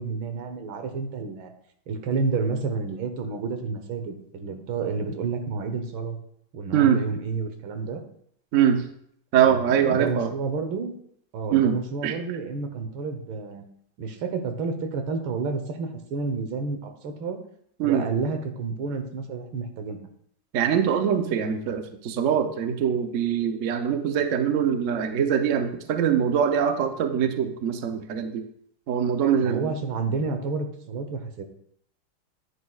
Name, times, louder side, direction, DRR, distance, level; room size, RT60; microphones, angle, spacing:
voice 1, 0.0-1.5 1.9-6.2 6.5-8.0 9.3-11.0 11.3-13.6 14.0-17.4 17.8-20.1 29.4-31.4, right 4 dB, 80° right, 7 dB, 1.8 m, -30 dB
voice 2, 8.5-8.8 9.3-10.3 11.5-12.2 17.8-18.0 20.5-28.5 28.9-29.7, right 8 dB, 60° right, 7 dB, 0.8 m, -23 dB
9.9 x 9.6 x 2.4 m, 0.69 s
omnidirectional pair, 2.2 m